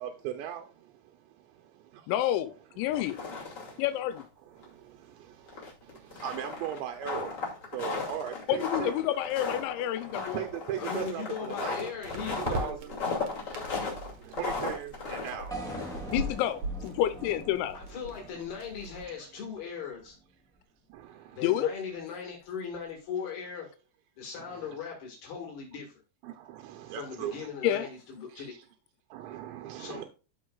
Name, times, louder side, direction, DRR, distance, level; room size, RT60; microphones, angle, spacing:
voice 1, 0.0-2.1 3.3-3.9 4.4-7.4 7.7-8.9 10.2-11.9 12.4-12.9 13.2-16.2 19.0-19.2 20.9-21.5 24.4-24.8 26.2-27.5 27.8-27.9 28.3-28.6 29.1-30.0, right 11 dB, 80° right, 3.0 m, -40 dB
voice 2, 2.1-3.2 3.8-4.2 8.5-10.4 16.1-17.8 21.4-21.7 27.6-27.9, left 12 dB, 90° left, 3.0 m, -29 dB
sound 1, 2.8-3.8 4.1-4.2 4.6-4.7 5.5-16.2, left 4 dB, 35° left, 2.8 m, -36 dB
sound 2, 5.3-5.4 12.0-19.1, right 1 dB, 55° right, 2.0 m, -41 dB
voice 3, 10.8-12.7 13.7-14.1 17.7-20.2 21.3-23.8 24.2-26.0 26.9-28.5 29.8-30.1, left 6 dB, 65° left, 3.7 m, -39 dB
sound 3, 15.5-19.6, right 1 dB, 5° left, 0.6 m, -43 dB
14.0 x 5.1 x 2.4 m
omnidirectional pair, 5.1 m